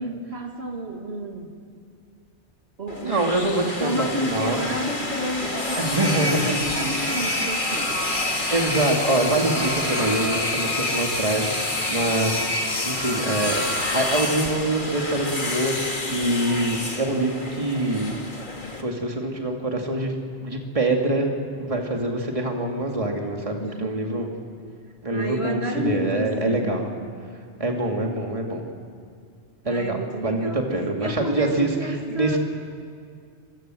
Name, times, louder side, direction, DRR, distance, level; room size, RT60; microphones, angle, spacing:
voice 1, 0.0-1.5 2.8-8.0 23.6-24.1 25.1-26.9 29.6-32.4, right 1 dB, 65° right, 2 dB, 2.6 m, -31 dB
sound 1, 2.9-18.8, left 2 dB, 45° left, 2.3 m, -27 dB
sound 2, 3.0-16.8, left 3 dB, 25° left, 3.8 m, -49 dB
voice 2, 3.0-4.6 5.8-6.6 8.5-12.6 12.9-13.6 13.9-18.1 18.8-20.1 20.4-21.3 21.6-24.3 25.0-26.9 27.6-28.6 29.7-30.0 30.2-32.4, right 2 dB, 30° right, 1 dB, 2.4 m, -25 dB
26.0 x 24.0 x 7.7 m, 2.2 s
omnidirectional pair, 1.2 m